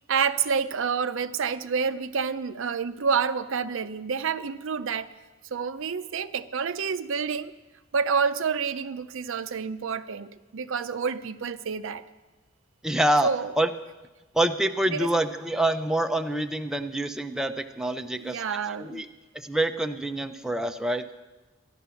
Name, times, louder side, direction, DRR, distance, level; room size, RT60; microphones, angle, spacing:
voice 1, 0.1-5.1 5.5-7.5 7.9-12.0 13.2-13.5 14.9-15.1 18.1-19.0, right 6 dB, 65° right, 12 dB, 0.5 m, -28 dB
voice 2, 12.8-13.3 13.6-13.7 14.3-18.4 18.8-19.1 19.3-21.0, right 1 dB, 5° right, 6 dB, 0.5 m, -26 dB
13.5 x 11.5 x 7.0 m, 1.2 s
head